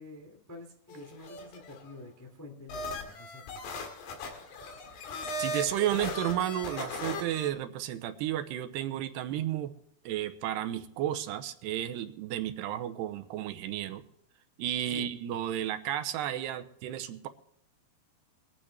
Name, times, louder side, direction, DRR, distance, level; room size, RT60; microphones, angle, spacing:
voice 1, 0.0-3.6 14.9-15.1, left 2 dB, 15° left, 1 dB, 0.7 m, -48 dB
sound 1, 0.9-1.9 2.7-7.5, left 2 dB, 70° left, 3.9 m, -38 dB
voice 2, 5.4-9.7 10.0-14.0 14.6-17.3, right 12 dB, 90° right, 8 dB, 3.0 m, -32 dB
24.5 x 8.8 x 3.4 m, 0.75 s
omnidirectional pair, 4.8 m